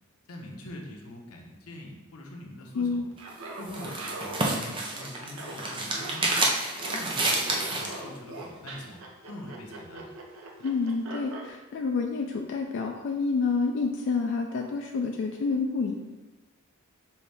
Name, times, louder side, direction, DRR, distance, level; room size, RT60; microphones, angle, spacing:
voice 1, 0.3-3.0 3.6-6.5 6.9-8.9 9.3-10.1, left 1 dB, 85° left, 1 dB, 0.8 m, -43 dB
voice 2, 2.7-3.1 10.6-15.9, left 4 dB, 55° left, 2 dB, 0.3 m, -28 dB
Laughter, 3.1-11.5, right 2 dB, 70° right, 0.7 m, -41 dB
sound 1, 3.2-8.0, right 2 dB, 20° right, 0.5 m, -29 dB
5.6 x 2.7 x 3.3 m, 1.1 s
head